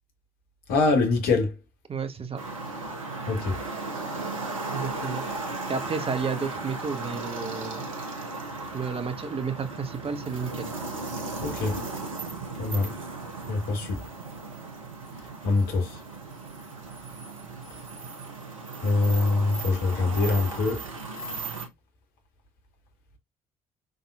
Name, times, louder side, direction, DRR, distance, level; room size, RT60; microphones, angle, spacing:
voice 1, 0.7-1.5 3.3-3.6 11.4-11.8 12.6-12.9 13.5-14.0 15.4-16.0 18.8-20.8, left 3 dB, 65° left, 1.5 m, -24 dB
voice 2, 1.9-2.4 4.7-5.2 5.7-7.9 8.7-10.7, right 5 dB, 35° right, 1.0 m, -32 dB
sound 1, 2.4-21.7, right 3 dB, 85° right, 1.0 m, -36 dB
5.5 x 3.8 x 2.4 m
figure-of-eight pair, 45°, 17 cm